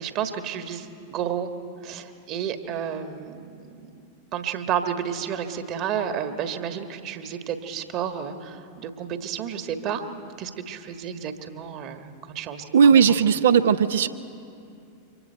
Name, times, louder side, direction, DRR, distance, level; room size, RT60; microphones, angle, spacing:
voice 1, 0.0-1.5 1.8-3.7 4.3-12.6 13.1-13.2, right 8 dB, 40° right, 8 dB, 1.5 m, -31 dB
voice 2, 12.7-14.1, right 7 dB, 60° right, 11 dB, 0.7 m, -17 dB
28.5 x 24.5 x 4.5 m, 2.6 s
figure-of-eight pair, 90°, 0 cm